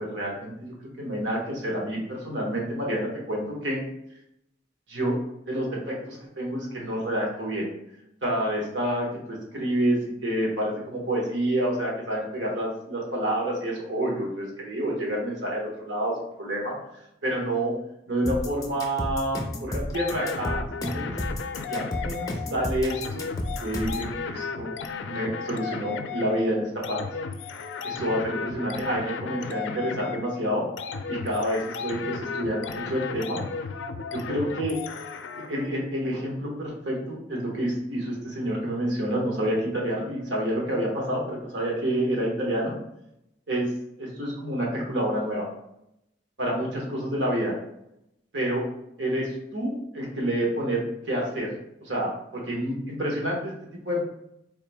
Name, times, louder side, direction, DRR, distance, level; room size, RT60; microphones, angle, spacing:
voice 1, 0.0-3.8 4.9-5.2 5.5-7.7 8.2-10.0 10.2-16.1 16.4-16.7 17.2-17.7 18.1-21.1 21.7-23.3 23.6-24.7 25.0-27.0 27.8-30.7 31.1-33.4 34.1-34.8 35.3-42.8 43.5-43.7 44.0-45.5 46.4-47.5 48.3-48.6 49.0-51.5 51.8-53.5 53.8-54.0, right 1 dB, 80° right, -2 dB, 1.2 m, -28 dB
sound 1, 18.3-24.1, left 1 dB, 20° left, 0.5 m, -31 dB
sound 2, 19.9-35.7, left 5 dB, 80° left, 0.3 m, -35 dB
3.7 x 2.7 x 3.4 m, 0.80 s
head